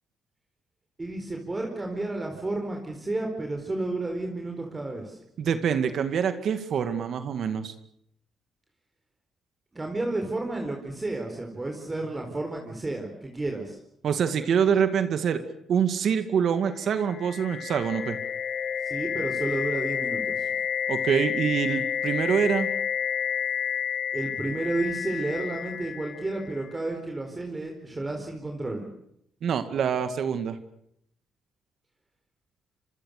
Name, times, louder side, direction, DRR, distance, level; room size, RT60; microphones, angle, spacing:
voice 1, 1.0-5.2 9.7-13.8 18.8-20.5 24.1-28.9, right 2 dB, 20° right, 3 dB, 4.5 m, -31 dB
voice 2, 5.4-7.7 14.0-15.4 15.7-18.2 20.9-22.7 29.4-30.6, right 7 dB, 65° right, 9 dB, 2.2 m, -25 dB
sound 1, 16.8-26.7, left 8 dB, 60° left, 1.1 m, -30 dB
26.5 x 24.5 x 6.7 m, 0.73 s
cardioid pair, 90°, 0 cm